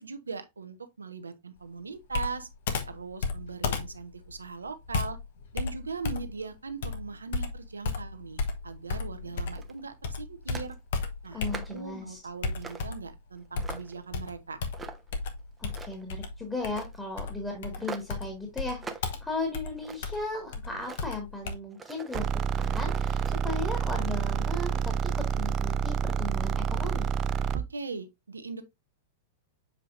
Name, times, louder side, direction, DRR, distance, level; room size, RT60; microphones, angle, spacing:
voice 1, 0.0-2.5 2.8-5.2 5.5-10.8 11.2-11.4 11.7-14.6 27.5-28.6, right 4 dB, 75° right, 1.0 m, -40 dB
Computer keyboard, 2.1-9.7 10.0-11.9 12.4-13.2 13.6-21.6, left 4 dB, 55° left, 1.1 m, -34 dB
sound 1, 9.4-9.8 10.5-10.7 11.2-11.9 12.6-12.9 13.4-14.0 14.7-15.2 15.6-16.1 16.7-17.0 17.8-18.2 18.8-19.1 19.5-20.2 20.8-21.1 21.7-23.4, right 4 dB, 15° right, 0.9 m, -43 dB
voice 2, 11.3-12.2 15.6-22.3 22.5-27.1, left 3 dB, 10° left, 2.0 m, -36 dB
sound 2, 22.1-27.7, right 7 dB, 30° right, 0.4 m, -28 dB
7.5 x 5.0 x 2.5 m
figure-of-eight pair, 95°, 0 cm